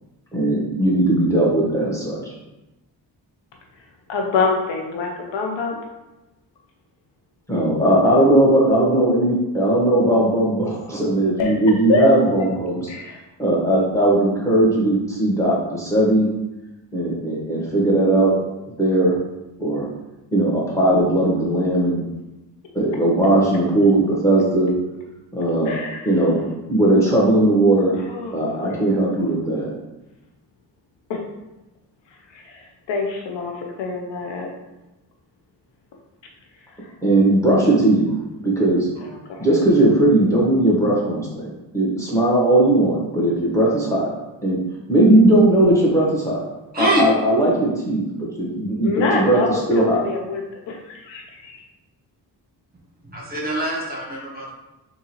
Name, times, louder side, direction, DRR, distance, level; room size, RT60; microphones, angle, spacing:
voice 1, 0.3-2.3 7.5-12.9 13.4-16.3 16.9-18.3 18.8-19.2 19.6-19.9 20.3-22.0 22.7-24.7 25.3-25.8 26.0-26.4 26.7-28.0 28.3-29.7 37.0-38.0 38.4-38.9 39.4-44.1 44.4-44.6 44.9-46.4 46.8-50.0, right 1 dB, 5° left, -5 dB, 1.5 m, -18 dB
voice 2, 4.1-5.8 7.5-7.6 11.4-11.5 11.9-12.0 12.4-12.5 12.9-13.2 25.7-26.1 28.1-28.8 31.1-31.2 32.5-32.6 32.9-33.5 33.8-34.5 39.0-39.4 48.8-50.4 50.7-51.6, left 3 dB, 80° left, 1 dB, 0.6 m, -25 dB
voice 3, 46.7-47.1 53.1-54.5, right 2 dB, 20° right, -5 dB, 1.3 m, -23 dB
3.6 x 2.7 x 3.0 m, 1.0 s
cardioid pair, 50°, 44 cm